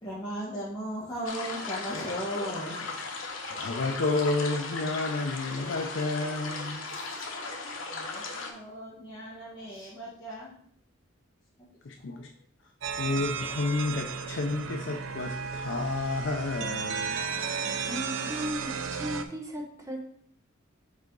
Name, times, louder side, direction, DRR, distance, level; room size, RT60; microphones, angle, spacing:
voice 1, 0.0-2.9 6.5-7.2 7.9-10.5 11.6-11.7 12.4-12.5, equal, 20° left, -9 dB, 1.3 m, -37 dB
sound 1, 1.2-8.5, left 3 dB, 85° left, 1.1 m, -37 dB
voice 2, 3.5-6.9 11.8-12.3 13.0-17.2, left 3 dB, 60° left, 3 dB, 0.5 m, -30 dB
sound 2, 12.8-19.2, right 6 dB, 70° right, 0.5 m, -34 dB
voice 3, 17.8-20.0, equal, 15° right, 1 dB, 0.9 m, -36 dB
5.5 x 4.5 x 3.8 m, 0.64 s
head